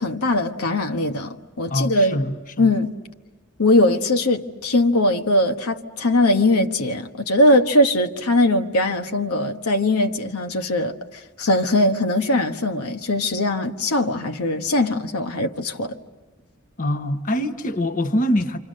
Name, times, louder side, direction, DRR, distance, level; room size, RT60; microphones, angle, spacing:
voice 1, 0.0-2.2 2.6-2.9 3.6-15.9, left 1 dB, 85° left, 1.3 m, -20 dB
voice 2, 1.7-2.7 16.8-18.6, left 1 dB, 40° left, 1.2 m, -24 dB
28.5 x 27.0 x 6.5 m
head